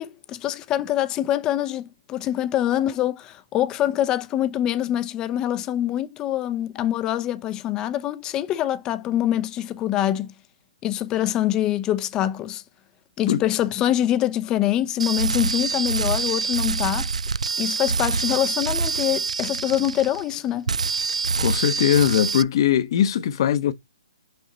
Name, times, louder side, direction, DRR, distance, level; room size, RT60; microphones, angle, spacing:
voice 1, 0.0-10.3 10.8-12.6 13.2-17.1 17.6-20.7, left 12 dB, 20° left, 0.7 m, -24 dB
sound 1, 15.0-20.4 20.7-22.4, right 5 dB, 90° right, 0.4 m, -26 dB
voice 2, 21.4-23.7, left 10 dB, 50° left, 1.0 m, -20 dB
6.3 x 5.6 x 3.9 m
hypercardioid pair, 145°, 3 cm